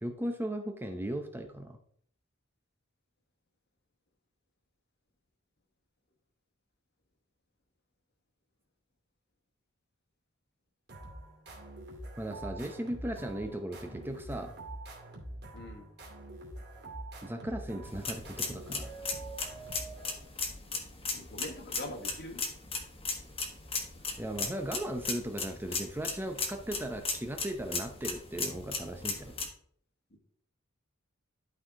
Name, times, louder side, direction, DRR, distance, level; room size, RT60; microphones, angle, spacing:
voice 1, 0.0-1.8 12.2-14.6 17.2-18.9 24.2-29.3, right 1 dB, 10° right, 5 dB, 0.7 m, -37 dB
sound 1, 10.9-20.4, right 2 dB, 55° right, 2.5 m, -45 dB
voice 2, 15.5-15.9 21.1-22.4 30.1-30.2, left 2 dB, 55° left, 4 dB, 1.5 m, -43 dB
sound 2, 17.8-29.5, left 4 dB, 30° left, 1.4 m, -37 dB
11.5 x 4.7 x 3.7 m, 0.63 s
head